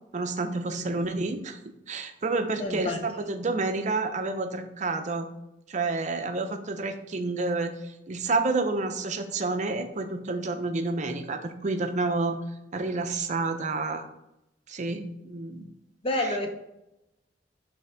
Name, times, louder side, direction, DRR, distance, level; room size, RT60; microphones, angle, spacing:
voice 1, 0.1-1.6 1.9-5.3 5.7-7.7 8.1-12.4 12.7-14.0 14.7-15.7 16.2-16.3, right 3 dB, 40° right, 7 dB, 0.6 m, -29 dB
voice 2, 2.6-3.0 16.0-16.5, left 1 dB, 30° left, 3 dB, 0.7 m, -29 dB
5.6 x 3.4 x 5.0 m, 0.87 s
head